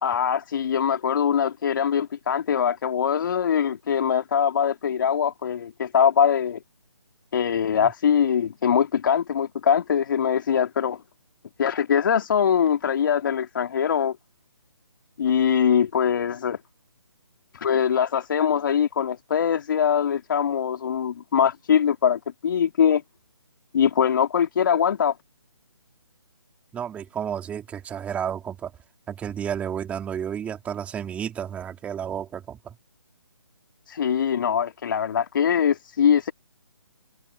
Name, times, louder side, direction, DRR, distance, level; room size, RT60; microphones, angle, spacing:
voice 1, 0.0-6.6 7.3-11.0 11.6-14.2 15.2-16.6 17.5-23.0 23.7-25.1 33.9-36.3, left 8 dB, 45° left, 2.2 m, -22 dB
voice 2, 26.7-28.7 29.1-32.7, right 8 dB, 10° right, 3.1 m, -31 dB
figure-of-eight pair, 150°, 15 cm